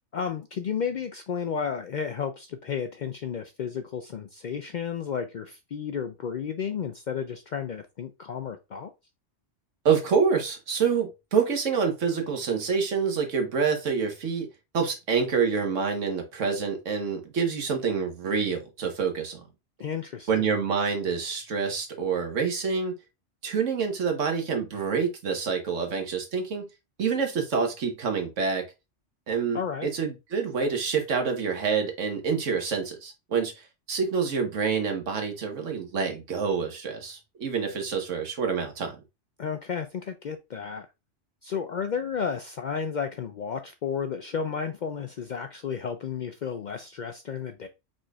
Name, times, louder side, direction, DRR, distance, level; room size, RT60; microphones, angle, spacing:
voice 1, 0.0-8.9 19.8-20.6 29.5-29.9 39.4-40.9 41.4-47.7, left 7 dB, 65° left, 0.4 m, -32 dB
voice 2, 9.8-14.5 14.7-19.4 20.3-23.0 23.4-26.7 27.0-28.7 29.3-39.0, right 5 dB, 85° right, 1.5 m, -27 dB
4.9 x 4.3 x 2.3 m
omnidirectional pair, 1.2 m